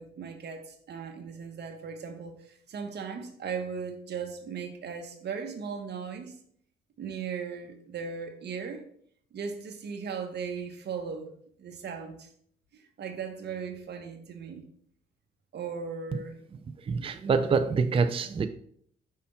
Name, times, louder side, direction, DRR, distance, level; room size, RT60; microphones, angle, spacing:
voice 1, 0.0-6.3 7.0-8.8 9.3-11.3 11.6-12.3 12.7-14.6 15.5-16.4, right 6 dB, 55° right, 5 dB, 1.1 m, -37 dB
voice 2, 16.8-18.5, right 5 dB, 25° right, 9 dB, 0.4 m, -26 dB
5.7 x 3.4 x 5.5 m, 0.63 s
cardioid pair, 90°, 20 cm